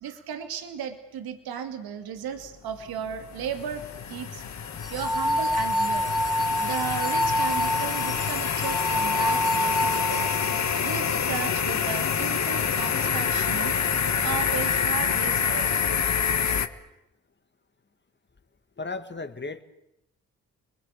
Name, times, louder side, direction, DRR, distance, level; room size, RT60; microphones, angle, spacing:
voice 1, 0.0-4.4 4.9-6.1 6.6-10.4 10.8-13.7 14.2-15.7, right 8 dB, 75° right, 7 dB, 2.3 m, -35 dB
sound 1, 2.8-16.7, left 7 dB, 50° left, 1.7 m, -27 dB
sound 2, 3.2-16.5, left 7 dB, 70° left, 3.4 m, -46 dB
sound 3, 4.8-10.7, equal, ahead, 2.0 m, -27 dB
voice 2, 18.8-19.6, left 3 dB, 30° left, 9 dB, 2.2 m, -34 dB
28.5 x 21.0 x 8.5 m, 0.86 s
supercardioid pair, 50°, 37 cm